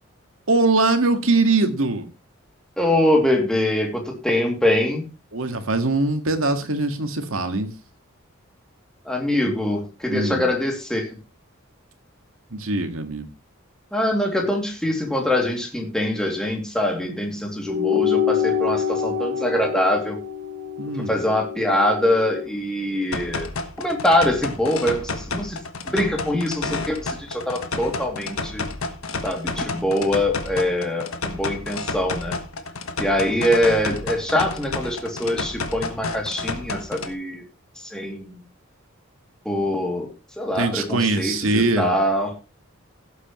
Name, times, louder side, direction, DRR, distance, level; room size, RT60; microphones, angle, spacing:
voice 1, 0.5-2.1 5.3-7.7 10.1-10.5 12.5-13.3 20.8-21.2 40.6-41.9, right 3 dB, 85° right, 7 dB, 1.8 m, -22 dB
voice 2, 2.8-5.0 9.0-11.1 13.9-20.2 21.1-23.5 23.8-25.6 25.9-28.6 29.2-32.3 33.0-37.4 37.9-38.4 39.4-40.1 40.4-42.3, left 1 dB, 5° left, 0 dB, 2.8 m, -23 dB
sound 1, 17.6-22.5, left 7 dB, 30° right, 6.4 m, -26 dB
sound 2, 23.1-37.1, left 3 dB, 85° left, 1.4 m, -30 dB
16.5 x 8.2 x 3.1 m, 0.31 s
head